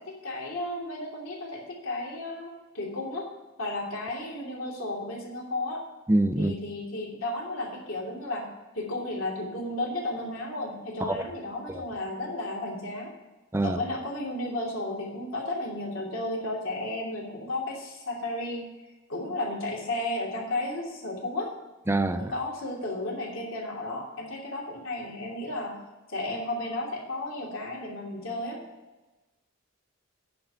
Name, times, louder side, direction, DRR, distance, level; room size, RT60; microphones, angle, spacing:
voice 1, 0.0-3.3 3.6-5.8 6.4-8.5 8.7-13.1 13.6-18.7 19.1-21.5 22.1-25.8 26.1-28.6, left 1 dB, 75° left, 3.0 m, -33 dB
voice 2, 6.1-6.5 11.1-11.2 11.7-11.8 13.5-13.8 21.9-22.3, right 2 dB, 10° right, 0.5 m, -25 dB
10.0 x 5.4 x 6.8 m
head